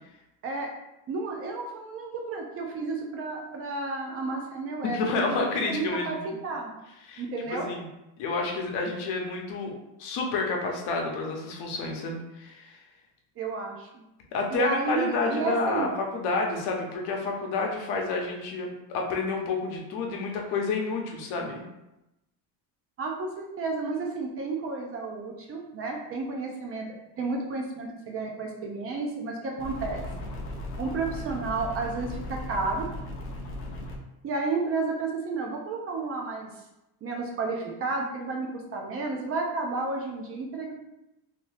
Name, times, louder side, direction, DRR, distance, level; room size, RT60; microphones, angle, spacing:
voice 1, 1.1-5.4 5.7-6.2 6.4-6.7 7.2-7.7 13.4-14.0 14.5-15.9 23.0-26.9 27.2-30.0 30.8-32.9 34.2-36.5 37.0-40.7, right 3 dB, 35° right, 1 dB, 0.5 m, -31 dB
voice 2, 4.8-6.3 7.0-7.2 7.5-7.8 8.2-9.7 10.0-12.8 14.3-21.6, left 3 dB, 80° left, 1 dB, 0.8 m, -29 dB
sound 1, 29.6-34.0, left 1 dB, 35° left, 0.5 m, -37 dB
2.8 x 2.7 x 3.2 m, 0.93 s
cardioid pair, 150°, 40 cm